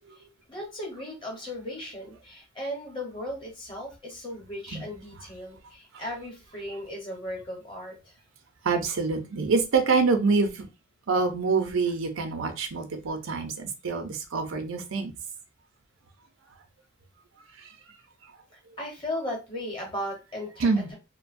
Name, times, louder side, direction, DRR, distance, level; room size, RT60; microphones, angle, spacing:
voice 1, 0.1-8.1 18.5-20.9, left 1 dB, 25° left, 1.0 m, -37 dB
voice 2, 8.6-10.7 11.1-15.1 20.6-20.9, right 4 dB, 80° right, 0.6 m, -26 dB
2.6 x 2.2 x 2.5 m
head